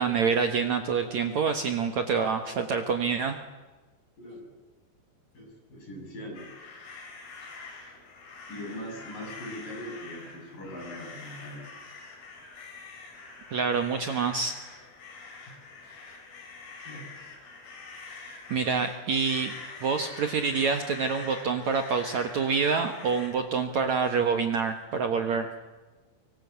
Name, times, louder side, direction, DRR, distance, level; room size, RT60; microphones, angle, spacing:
voice 1, 0.0-3.4 13.5-14.6 18.5-19.5 19.8-25.5, right 5 dB, 70° right, 6 dB, 1.8 m, -27 dB
voice 2, 4.2-4.5 5.3-6.5 8.5-11.7 16.8-17.1, equal, 45° left, 2 dB, 8.0 m, -41 dB
sound 1, 6.3-23.3, left 4 dB, 65° left, 6.2 m, -45 dB
25.0 x 24.5 x 8.3 m, 1.2 s
omnidirectional pair, 5.3 m